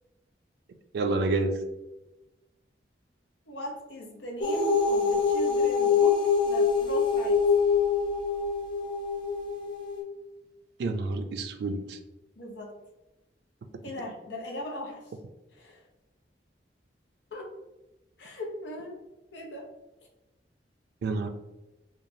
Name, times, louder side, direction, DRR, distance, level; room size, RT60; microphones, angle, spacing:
voice 1, 0.9-1.6 10.8-12.0 21.0-21.3, right 3 dB, 65° right, 7 dB, 0.3 m, -28 dB
voice 2, 3.5-6.2 6.4-7.4 12.4-12.7 13.8-15.0 15.6-15.8 17.3-17.5 18.2-19.0 19.3-19.7, left 1 dB, 85° left, 1 dB, 0.6 m, -38 dB
sound 1, 4.4-10.0, left 5 dB, 30° left, 0.4 m, -25 dB
3.1 x 2.3 x 2.6 m, 1.0 s
head